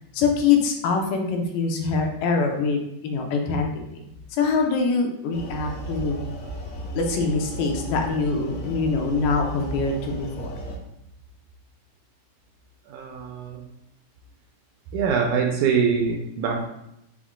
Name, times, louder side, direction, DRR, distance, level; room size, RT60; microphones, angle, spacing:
voice 1, 0.1-3.7 4.3-6.2 6.9-10.6, left 4 dB, 85° left, 2 dB, 2.3 m, -24 dB
sound 1, 5.3-10.8, right 1 dB, 70° left, 1.7 m, -34 dB
voice 2, 12.9-13.6 14.9-16.7, right 6 dB, 80° right, 1 dB, 1.8 m, -24 dB
5.9 x 2.1 x 3.6 m, 0.81 s
omnidirectional pair, 3.7 m